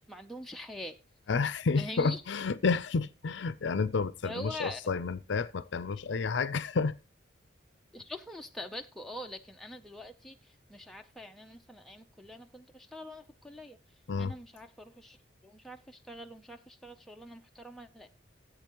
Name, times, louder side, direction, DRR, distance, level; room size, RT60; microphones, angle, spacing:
voice 1, 0.1-1.0 1.8-2.2 4.2-4.8 7.9-10.4 10.7-13.8 14.2-15.2 15.4-18.1, left 1 dB, ahead, 0.5 m, -44 dB
voice 2, 1.3-6.9 14.1-14.3, left 4 dB, 65° left, 0.5 m, -30 dB
14.0 x 8.3 x 3.0 m
head